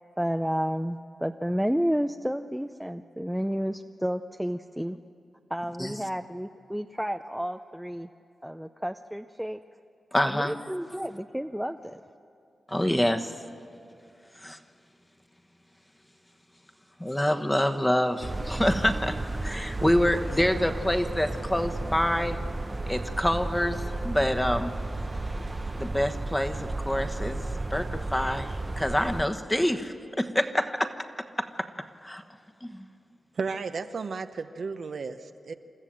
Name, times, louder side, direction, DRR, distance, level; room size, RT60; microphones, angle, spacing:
voice 1, 0.2-5.0 5.5-8.1 8.4-9.6 10.2-12.0, equal, 5° right, 6 dB, 0.5 m, -31 dB
voice 2, 10.1-10.5 12.7-13.3 14.4-14.6 17.0-22.4 22.9-24.7 25.8-27.4 27.7-28.5 28.8-30.9 31.4-31.7 32.0-32.2 32.6-32.8, left 1 dB, 10° left, 7 dB, 1.3 m, -26 dB
sound 1, 18.2-29.2, right 2 dB, 30° right, 0.9 m, -33 dB
voice 3, 33.3-35.5, right 4 dB, 65° right, 8 dB, 0.8 m, -33 dB
28.0 x 13.5 x 7.6 m, 2.6 s
cardioid pair, 55°, 0 cm